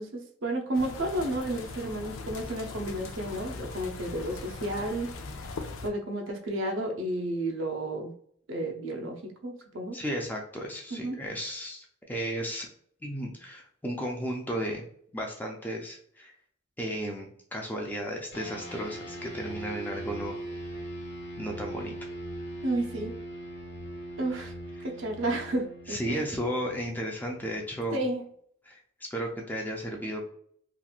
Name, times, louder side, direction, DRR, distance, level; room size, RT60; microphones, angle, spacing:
voice 1, 0.0-5.1 5.8-8.1 8.5-10.0 10.9-11.2 22.6-23.1 24.2-24.5 24.8-26.2 27.9-28.2, right 1 dB, 70° right, 2 dB, 0.6 m, -32 dB
sound 1, 0.7-5.9, left 3 dB, 85° left, 0.4 m, -40 dB
voice 2, 9.9-12.7 13.0-14.8 15.1-16.3 16.8-20.4 21.4-21.9 25.9-28.0 28.7-28.8 29.1-30.3, equal, 10° left, 0 dB, 0.4 m, -34 dB
sound 2, 18.3-28.0, right 1 dB, 55° left, 1.0 m, -41 dB
2.9 x 2.5 x 2.4 m, 0.63 s
head